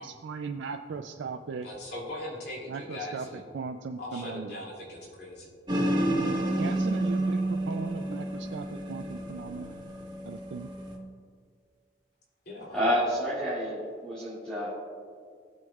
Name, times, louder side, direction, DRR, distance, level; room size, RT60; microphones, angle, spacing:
voice 1, 0.0-1.7 2.7-4.6 6.6-9.8 10.2-10.7, right 5 dB, 75° right, 5 dB, 0.4 m, -38 dB
voice 2, 1.6-3.4 4.0-5.5 12.5-12.8, left 1 dB, 65° left, -5 dB, 2.6 m, -39 dB
sound 1, 5.7-11.0, right 1 dB, 25° right, 1.4 m, -30 dB
voice 3, 12.7-14.7, equal, 5° left, -10 dB, 2.1 m, -29 dB
17.5 x 7.0 x 2.4 m, 2.1 s
head